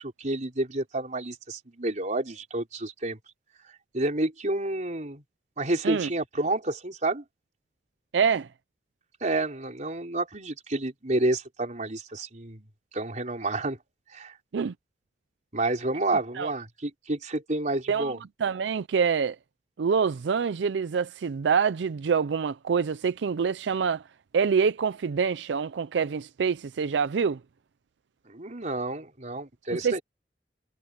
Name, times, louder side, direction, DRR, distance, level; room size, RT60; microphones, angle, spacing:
voice 1, 0.0-3.2 3.9-5.2 5.6-7.2 9.2-12.7 12.9-13.8 14.1-14.4 15.5-18.2 28.3-30.0, right 2 dB, 45° right, 4.4 m, -29 dB
voice 2, 8.1-8.5 14.5-14.7 16.4-16.5 17.9-18.1 18.4-19.4 19.8-24.0 24.3-27.4 29.7-30.0, right 6 dB, 85° right, 0.4 m, -26 dB
head